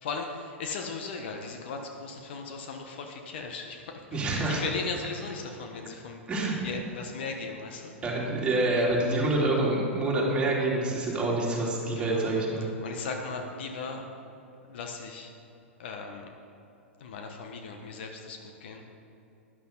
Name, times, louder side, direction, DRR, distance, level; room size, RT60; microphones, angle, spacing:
voice 1, 0.0-6.2 6.6-7.9 9.1-9.2 12.0-12.2 12.8-14.0 14.7-15.3 15.8-16.3 17.0-18.8, left 4 dB, 55° left, 3 dB, 1.3 m, -37 dB
voice 2, 4.1-4.6 6.3-6.6 8.0-12.7, right 2 dB, 15° right, -4 dB, 3.0 m, -27 dB
12.5 x 11.5 x 4.0 m, 2.9 s
figure-of-eight pair, 100°, 7 cm